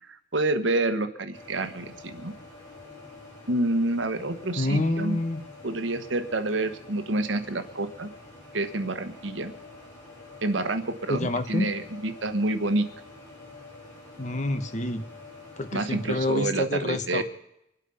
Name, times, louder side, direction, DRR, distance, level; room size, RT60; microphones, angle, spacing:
voice 1, 0.1-2.3 3.5-5.2 5.6-8.1 8.5-9.5 10.4-12.9 15.7-17.2, right 2 dB, 85° right, 9 dB, 1.3 m, -28 dB
sound 1, 1.3-16.5, left 3 dB, 20° left, 6.2 m, -47 dB
voice 2, 4.6-5.4 11.1-11.7 14.2-15.0 15.6-17.2, left 2 dB, 40° left, 9 dB, 1.2 m, -27 dB
24.5 x 8.3 x 5.6 m, 0.80 s
head